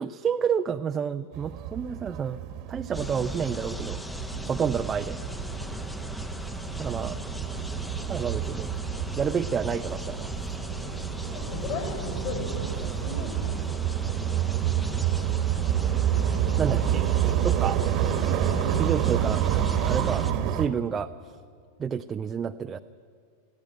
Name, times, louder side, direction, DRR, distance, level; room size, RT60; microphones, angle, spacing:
voice 1, 0.0-2.4 2.7-4.0 4.4-5.2 6.8-7.3 8.1-8.7 9.1-10.3 16.6-17.2 17.4-17.8 18.8-19.4 19.9-21.1 21.8-22.8, right 7 dB, 20° right, 8 dB, 0.5 m, -29 dB
sound 1, 1.3-20.7, right 11 dB, 40° right, 1.3 m, -29 dB
sound 2, 2.9-20.3, left 1 dB, 5° left, 0.9 m, -37 dB
voice 2, 4.2-4.6 5.5-5.8 11.3-13.6 18.4-19.6, left 4 dB, 45° left, 2 dB, 6.8 m, -38 dB
21.5 x 15.5 x 9.3 m, 2.1 s
figure-of-eight pair, 90°, 0 cm